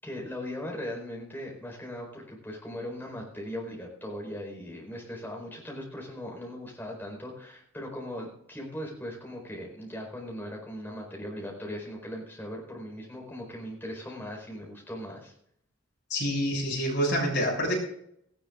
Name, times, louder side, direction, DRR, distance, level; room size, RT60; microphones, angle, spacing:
voice 1, 0.0-15.3, left 1 dB, 10° left, -1 dB, 4.6 m, -39 dB
voice 2, 16.1-17.7, equal, 60° left, -1 dB, 6.5 m, -27 dB
18.0 x 16.0 x 2.5 m, 0.72 s
head